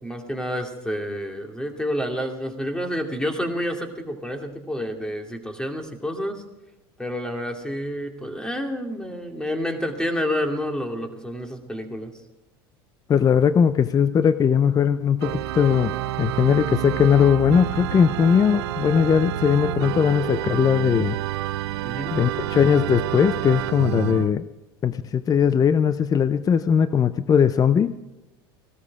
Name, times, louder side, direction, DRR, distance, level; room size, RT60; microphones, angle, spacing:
voice 1, 0.0-6.4 7.0-12.1 21.8-22.1, equal, 5° left, 4 dB, 2.5 m, -29 dB
voice 2, 13.1-21.2 22.1-24.4 24.8-27.9, left 7 dB, 30° left, 14 dB, 0.6 m, -19 dB
Organ, 15.2-24.3, right 14 dB, 75° right, 0.7 m, -29 dB
17.5 x 13.0 x 4.9 m, 1.0 s
hypercardioid pair, 90°, 13 cm